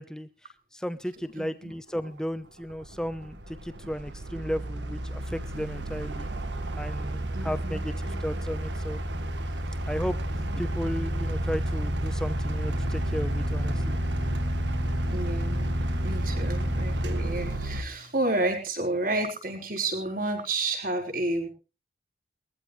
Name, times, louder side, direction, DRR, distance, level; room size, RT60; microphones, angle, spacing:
voice 1, 0.0-6.3 6.7-7.9 8.2-9.3 9.9-14.0, equal, 5° left, 11 dB, 0.9 m, -35 dB
voice 2, 1.4-1.7 7.3-8.5 10.4-10.7 15.1-21.5, right 2 dB, 50° right, 3 dB, 5.2 m, -31 dB
sound 1, 2.1-2.2 2.7-17.8, right 1 dB, 75° right, 1.7 m, -30 dB
Bowed string instrument, 12.3-18.4, left 1 dB, 60° left, 1.7 m, -42 dB
22.0 x 15.0 x 3.3 m, 0.34 s
head